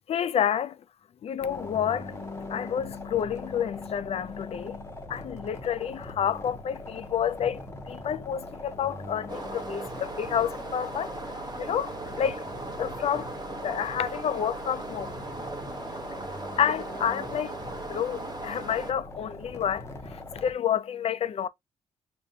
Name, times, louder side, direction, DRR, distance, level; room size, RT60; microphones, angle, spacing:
voice 1, 0.1-0.8 1.2-12.4 12.8-15.1 16.6-21.5, left 9 dB, 55° left, 0.4 m, -30 dB
sound 1, 1.4-20.5, left 2 dB, 20° left, 0.7 m, -41 dB
sound 2, 9.3-18.9, right 3 dB, 35° right, 0.9 m, -38 dB
5.0 x 2.1 x 2.6 m
cardioid pair, 90°, 13 cm